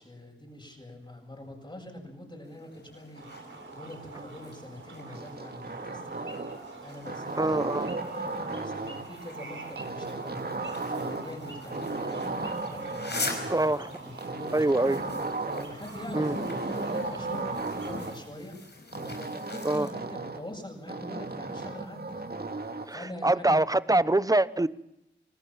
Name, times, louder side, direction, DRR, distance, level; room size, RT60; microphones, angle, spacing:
voice 1, 0.0-6.3 6.8-7.6 7.9-12.3 12.7-13.5 13.8-14.9 15.5-18.6 19.0-22.2 22.9-23.6, left 1 dB, 25° left, 1 dB, 7.9 m, -44 dB
sound 1, 2.4-19.9, left 2 dB, 60° left, 5.3 m, -43 dB
sound 2, 3.1-18.2, right 4 dB, 80° right, 3.7 m, -45 dB
sound 3, 5.1-6.7 7.0-9.1 9.8-11.4 11.7-13.7 14.2-15.8 16.1-18.1 18.9-20.5 20.9-22.9, right 3 dB, 55° right, 2.3 m, -35 dB
voice 2, 7.4-7.9 13.5-13.9 14.5-15.0 16.1-16.3 19.6-19.9 22.9-24.7, right 2 dB, 20° right, 17 dB, 1.0 m, -24 dB
27.5 x 18.5 x 7.6 m, 0.86 s
cardioid pair, 45°, 20 cm